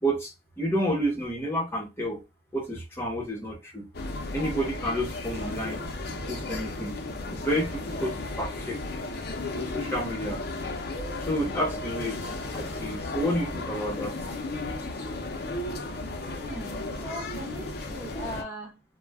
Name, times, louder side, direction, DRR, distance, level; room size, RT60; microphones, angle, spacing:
voice 1, 0.0-2.2 2.5-3.9 4.3-5.8 6.3-7.0 7.3-8.8 9.5-10.4 11.2-14.1, equal, 10° left, 0.9 m, -30 dB
sound 1, 3.9-18.4, left 2 dB, 55° left, 0.5 m, -34 dB
voice 2, 16.4-18.8, equal, 15° right, 0.5 m, -39 dB
2.3 x 2.1 x 3.3 m
head